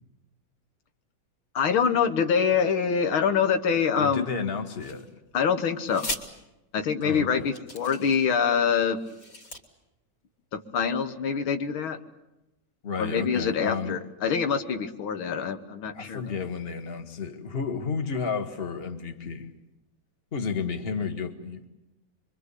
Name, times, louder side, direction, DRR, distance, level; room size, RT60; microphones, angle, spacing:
voice 1, 1.6-4.3 5.3-6.1 6.7-9.0 10.5-12.0 13.0-16.2, left 6 dB, 85° left, 9 dB, 2.1 m, -25 dB
voice 2, 4.0-5.1 7.0-7.5 12.8-14.0 15.9-19.5 20.3-21.7, left 5 dB, 30° left, 7 dB, 1.8 m, -32 dB
sound 1, 4.8-5.3 5.9-6.2 7.0-7.1 7.5-8.4 9.0-9.6, left 1 dB, 55° left, 3.6 m, -37 dB
25.0 x 24.5 x 8.3 m, 0.94 s
omnidirectional pair, 2.2 m